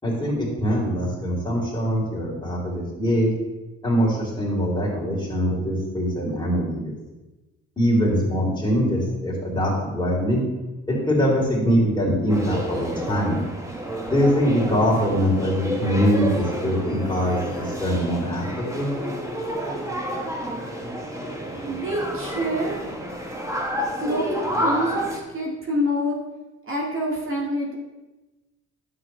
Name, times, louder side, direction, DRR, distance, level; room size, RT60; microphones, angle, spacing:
voice 1, 0.0-3.3 3.8-6.9 7.8-10.4 10.9-13.4 14.1-18.9, equal, 15° left, -5 dB, 3.3 m, -23 dB
sound 1, 12.3-25.2, equal, 10° right, 1.4 m, -30 dB
voice 2, 21.6-22.8 24.0-26.2 26.7-27.7, equal, 45° right, -2 dB, 1.9 m, -26 dB
9.7 x 7.7 x 3.3 m, 1.1 s
cardioid pair, 90°, 30 cm